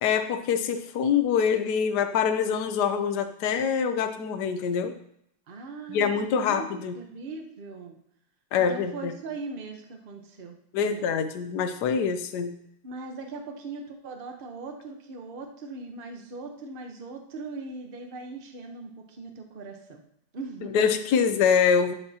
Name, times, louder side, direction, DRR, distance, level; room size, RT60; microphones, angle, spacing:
voice 1, 0.0-4.9 5.9-6.9 8.5-9.1 10.7-12.5 20.6-21.9, left 7 dB, 65° left, 8 dB, 1.1 m, -25 dB
voice 2, 5.5-6.1 6.4-6.7 6.9-8.0 8.5-11.0 12.8-20.0 20.3-20.9 21.2-21.3, right 3 dB, 40° right, 3 dB, 0.7 m, -40 dB
11.5 x 7.1 x 2.9 m, 0.72 s
omnidirectional pair, 2.4 m